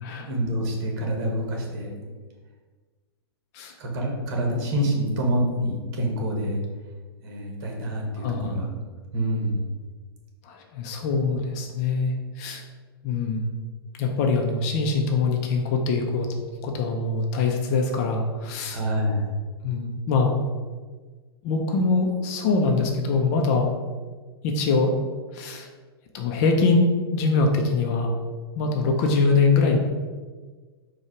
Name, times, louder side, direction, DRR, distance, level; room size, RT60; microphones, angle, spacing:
voice 1, 0.2-2.1 3.8-6.6 7.2-8.7 9.1-9.6 18.7-19.3, equal, 45° right, 1 dB, 1.2 m, -27 dB
voice 2, 8.2-8.6 10.4-12.6 13.0-13.4 14.0-16.3 16.6-18.8 19.6-20.4 21.4-23.7 24.4-25.0 25.3-25.7 26.1-26.9 27.1-28.1 28.5-29.8, left 4 dB, 40° left, 2 dB, 0.6 m, -23 dB
4.5 x 2.3 x 4.4 m, 1.4 s
figure-of-eight pair, 110°, 14 cm